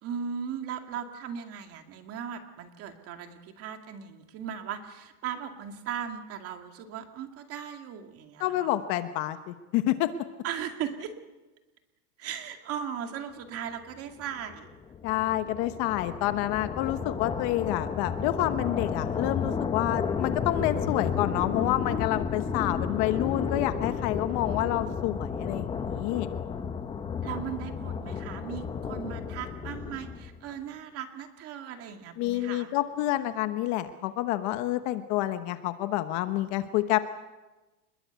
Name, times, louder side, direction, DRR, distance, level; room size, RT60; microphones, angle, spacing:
voice 1, 0.0-8.7 10.4-11.1 12.2-14.8 27.2-32.7, right 8 dB, 30° right, 6 dB, 2.3 m, -38 dB
voice 2, 8.4-10.1 15.0-26.3 32.2-37.0, left 14 dB, 35° left, 10 dB, 1.1 m, -28 dB
sound 1, 14.2-30.5, left 6 dB, 10° left, 0.9 m, -32 dB
26.5 x 21.5 x 8.1 m, 1.1 s
supercardioid pair, 155°, 47 cm